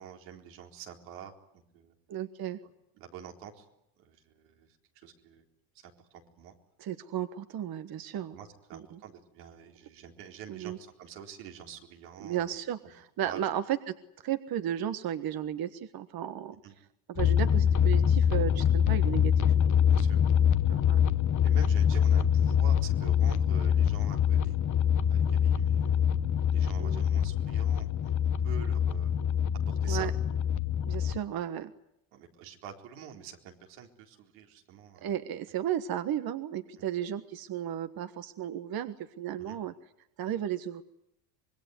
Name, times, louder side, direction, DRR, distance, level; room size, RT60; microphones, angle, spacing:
voice 1, 0.0-1.3 1.7-1.9 2.9-3.7 4.0-4.8 5.0-5.4 5.8-6.5 8.3-12.6 13.2-13.4 16.6-16.7 19.9-20.2 21.4-24.6 25.1-26.0 26.5-28.1 28.4-29.1 29.7-30.1 32.1-35.1 36.8-36.9 39.4-39.6, right 8 dB, 85° right, 2 dB, 4.2 m, -47 dB
voice 2, 2.1-2.6 6.8-8.4 8.7-9.0 10.5-10.8 12.2-13.9 14.2-16.6 17.1-19.5 20.7-21.0 26.8-27.0 29.9-30.1 30.9-31.7 35.0-39.7 40.2-40.8, right 10 dB, 50° right, 10 dB, 1.4 m, -34 dB
sound 1, 17.2-31.2, left 8 dB, 40° left, 1.0 m, -25 dB
25.5 x 20.5 x 9.5 m, 0.81 s
supercardioid pair, 100°, 48 cm